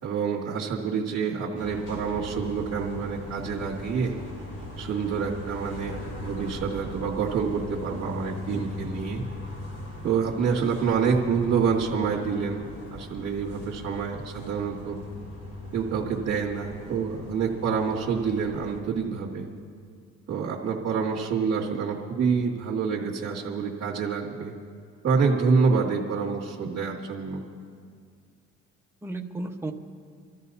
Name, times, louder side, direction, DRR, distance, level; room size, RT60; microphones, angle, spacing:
voice 1, 0.0-4.1 4.8-9.2 10.0-12.6 12.9-15.0 15.7-19.5 20.3-24.5 25.0-27.4, right 5 dB, 60° right, -6 dB, 2.0 m, -27 dB
sound 1, 1.6-18.8, left 1 dB, 50° left, 3.7 m, -39 dB
voice 2, 8.5-8.9 25.5-25.6 29.0-29.7, right 2 dB, 10° right, 2 dB, 1.1 m, -35 dB
27.0 x 13.5 x 2.8 m, 2.2 s
cardioid pair, 90°, 30 cm